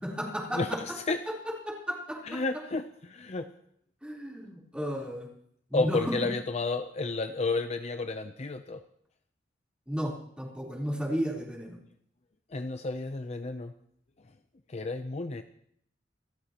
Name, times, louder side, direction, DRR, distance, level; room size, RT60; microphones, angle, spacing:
voice 1, 0.0-0.8 1.3-2.4 4.0-5.3 5.7-6.1 9.9-11.8, equal, 5° right, -3 dB, 3.7 m, -33 dB
voice 2, 0.5-1.2 2.2-3.5 5.7-8.8 12.5-13.7 14.7-15.4, left 3 dB, 35° left, 8 dB, 0.6 m, -31 dB
27.0 x 13.0 x 3.0 m, 0.69 s
head